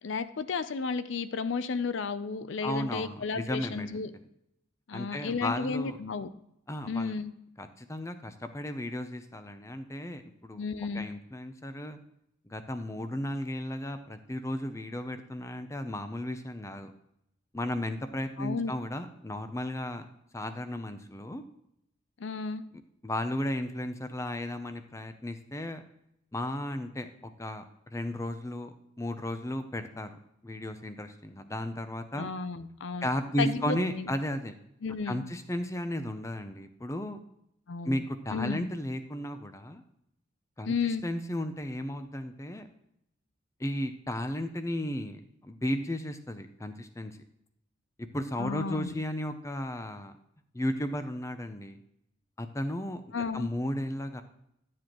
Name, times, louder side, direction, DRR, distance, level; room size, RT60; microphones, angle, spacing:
voice 1, 0.0-4.1 4.9-6.3 6.9-7.3 10.6-11.1 18.4-18.7 22.2-22.6 32.2-33.1 33.4-34.1 34.8-35.3 37.7-38.0 38.3-38.7 40.6-41.0 48.4-49.0 53.1-53.5, left 4 dB, 65° left, 13 dB, 0.5 m, -33 dB
voice 2, 2.6-4.2 4.9-6.0 6.7-7.1 7.6-10.6 10.9-12.0 12.5-16.9 17.5-20.1 20.3-21.4 23.0-25.8 26.3-32.3 33.0-34.5 35.1-37.2 37.8-39.8 40.6-42.7 43.6-47.2 48.0-50.1 50.5-51.8 52.4-54.2, left 1 dB, 15° left, 9 dB, 0.5 m, -34 dB
11.5 x 7.4 x 3.0 m, 0.79 s
head